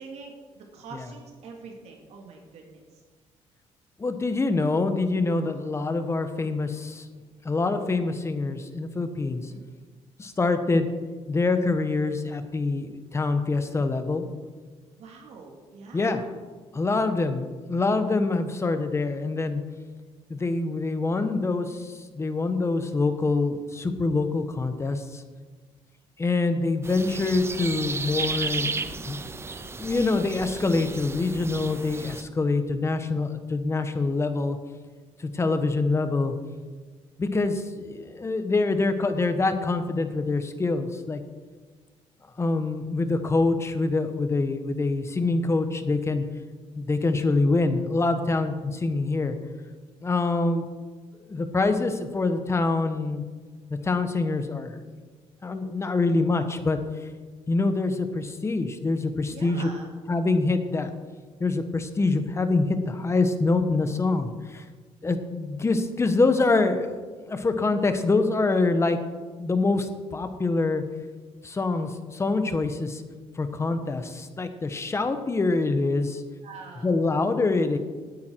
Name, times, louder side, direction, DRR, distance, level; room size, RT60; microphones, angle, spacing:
voice 1, 0.0-2.9 9.5-9.6 15.0-16.2 59.3-59.9 76.4-76.9, right 4 dB, 70° right, 1 dB, 2.5 m, -44 dB
voice 2, 4.0-7.1 7.4-9.5 10.2-10.9 11.3-14.3 15.9-16.2 16.7-19.6 20.3-25.2 26.2-28.7 29.1-29.2 29.8-34.6 35.2-36.3 37.2-41.2 42.4-46.2 46.7-49.4 50.0-50.6 51.3-53.2 53.8-54.8 55.4-56.8 57.5-59.7 60.1-60.9 61.4-64.6 65.0-67.0 67.3-69.0 69.4-70.8 71.4-73.0 73.4-76.2 76.8-77.8, left 3 dB, 25° left, 8 dB, 1.3 m, -25 dB
sound 1, 26.8-32.2, right 4 dB, 20° right, 0.7 m, -33 dB
18.0 x 9.3 x 4.7 m, 1.4 s
cardioid pair, 110°, 11 cm